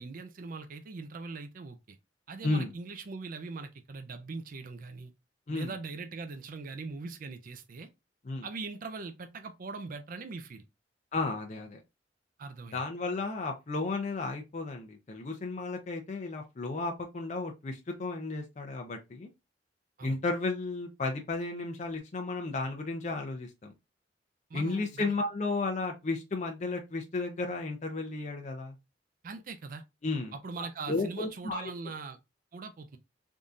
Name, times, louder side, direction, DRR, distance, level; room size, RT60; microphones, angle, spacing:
voice 1, 0.0-2.0 2.3-5.1 5.5-7.9 8.4-10.6 12.4-12.8 20.0-20.2 24.5-25.1 29.2-29.8 30.3-32.2 32.5-33.0, right 4 dB, 50° right, 0.4 m, -41 dB
voice 2, 11.1-11.8 12.7-19.3 20.0-23.7 24.5-28.7 30.0-30.3 30.9-31.7, left 3 dB, 40° left, 0.5 m, -33 dB
3.5 x 2.7 x 2.3 m
head